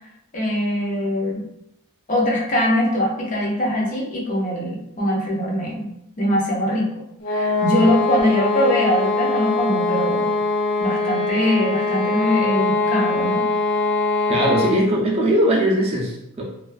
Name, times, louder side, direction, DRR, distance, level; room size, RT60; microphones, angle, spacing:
voice 1, 0.3-1.5 2.1-5.9 6.2-6.9 7.3-10.3 10.8-13.5, left 1 dB, 35° left, -3 dB, 0.6 m, -22 dB
sound 1, 7.2-14.9, left 3 dB, 70° left, 0.9 m, -22 dB
voice 2, 14.3-16.4, right 1 dB, 30° right, -3 dB, 0.4 m, -20 dB
2.4 x 2.3 x 2.4 m, 0.82 s
head